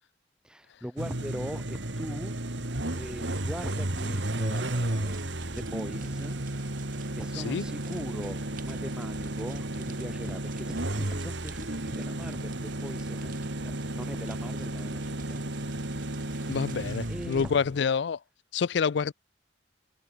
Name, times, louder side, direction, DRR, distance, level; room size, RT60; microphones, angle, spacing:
voice 1, 0.4-2.3 2.9-6.4 7.1-15.4 16.3-17.5, equal, 5° right, 7.7 m, -41 dB
sound 1, 1.0-17.8, right 1 dB, 70° right, 2.5 m, -33 dB
sound 2, 3.3-17.5, right 1 dB, 45° right, 5.5 m, -46 dB
voice 2, 16.5-18.2 18.5-19.1, left 6 dB, 65° left, 0.4 m, -27 dB
head